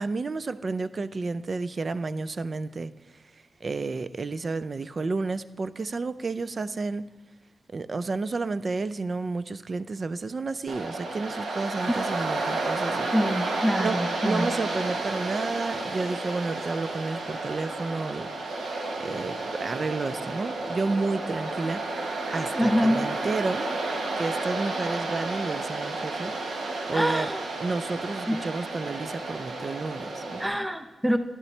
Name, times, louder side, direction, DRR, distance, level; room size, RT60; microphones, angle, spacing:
voice 1, 0.0-2.9 3.6-7.1 7.7-13.1 13.8-14.0 14.2-18.3 19.0-21.8 22.3-23.6 24.2-26.3 26.9-27.3 27.6-30.4, right 3 dB, 45° right, 14 dB, 0.4 m, -31 dB
Waves surf, 10.7-30.5, right 2 dB, 85° right, 1.2 m, -31 dB
voice 2, 13.1-14.5 22.5-23.0 26.9-27.4 28.3-28.4 30.4-31.2, equal, 10° right, 8 dB, 0.7 m, -25 dB
12.0 x 11.5 x 3.3 m, 1.3 s
cardioid pair, 80°, 0 cm